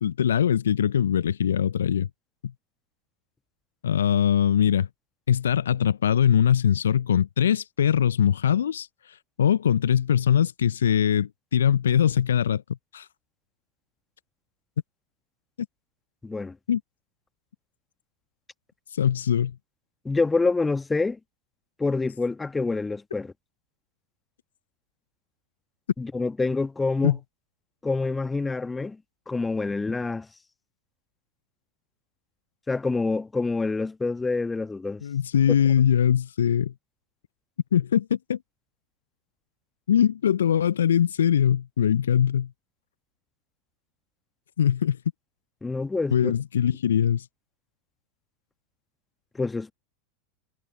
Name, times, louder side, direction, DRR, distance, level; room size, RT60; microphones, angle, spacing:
voice 1, 0.0-2.1 2.4-2.5 3.8-4.9 5.3-12.6 12.9-13.1 16.7-16.8 18.9-19.6 27.0-27.2 35.0-36.7 37.7-38.4 39.9-42.5 44.6-45.0 46.1-47.3, left 9 dB, 75° left, 0.6 m, -22 dB
voice 2, 16.2-16.6 20.0-21.2 21.8-23.3 26.0-27.2 27.8-29.0 29.3-30.3 32.7-35.0 45.6-46.3 49.3-49.7, left 3 dB, 15° left, 1.4 m, -26 dB
figure-of-eight pair, 85°, 0 cm